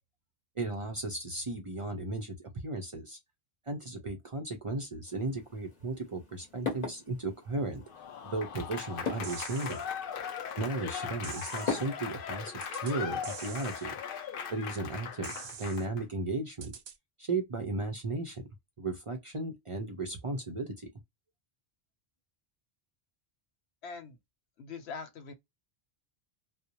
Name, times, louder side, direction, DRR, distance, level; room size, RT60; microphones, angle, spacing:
voice 1, 0.6-3.2 3.7-7.8 8.2-9.8 10.6-12.5 12.8-13.9 14.5-16.7 17.2-18.4 18.8-20.9, right 2 dB, 40° right, 0.5 m, -35 dB
sound 1, 5.1-12.4, left 4 dB, 40° left, 1.0 m, -41 dB
Applause / Crowd, 7.9-16.0, left 7 dB, 65° left, 0.7 m, -39 dB
sound 2, 9.2-9.9 11.2-11.9 12.6-13.0 13.2-13.9 15.2-15.9 16.6-17.0, right 7 dB, 85° right, 0.8 m, -45 dB
voice 2, 23.8-24.2 24.6-25.3, left 5 dB, 90° left, 1.0 m, -42 dB
2.5 x 2.0 x 2.8 m
omnidirectional pair, 1.1 m